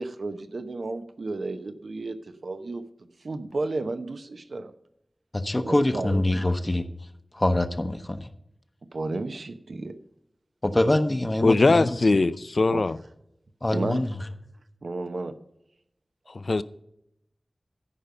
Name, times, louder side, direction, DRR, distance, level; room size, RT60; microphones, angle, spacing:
voice 1, 0.0-4.7 5.7-6.5 8.9-10.0 12.7-12.8 13.7-14.1 14.8-15.4, right 3 dB, 85° right, 0.8 m, -33 dB
voice 2, 5.3-6.9 7.3-8.3 10.6-12.0 13.6-14.2, left 1 dB, 25° left, 0.8 m, -24 dB
voice 3, 11.4-13.0 16.3-16.6, left 3 dB, 65° left, 0.5 m, -21 dB
14.0 x 5.2 x 6.8 m
wide cardioid pair, 70°, 0 cm